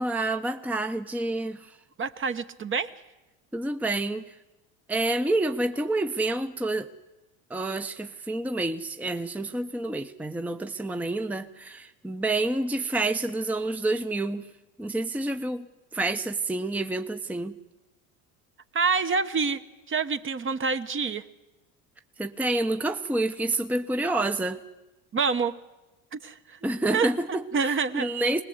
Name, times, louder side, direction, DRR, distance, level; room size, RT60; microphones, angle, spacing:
voice 1, 0.0-1.6 3.5-4.2 4.9-6.9 7.5-14.4 14.8-15.7 15.9-17.5 22.2-24.6 26.6-28.4, right 2 dB, 5° right, 0.8 m, -28 dB
voice 2, 2.0-2.9 18.7-19.6 19.9-21.2 25.1-25.6 26.1-26.6 26.9-28.1, right 5 dB, 30° right, 1.1 m, -27 dB
22.0 x 19.5 x 7.9 m
supercardioid pair, 90°, 42 cm